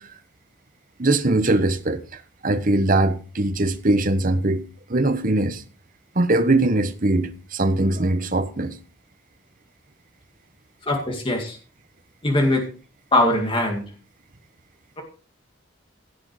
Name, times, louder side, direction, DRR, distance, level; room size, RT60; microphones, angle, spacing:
voice 1, 1.0-4.6 4.9-5.6 6.1-8.7, right 2 dB, 45° right, 1.1 m, -21 dB
voice 2, 10.9-11.6 12.2-12.6 13.1-13.8, left 1 dB, 25° left, 2.2 m, -21 dB
16.5 x 6.3 x 4.8 m
head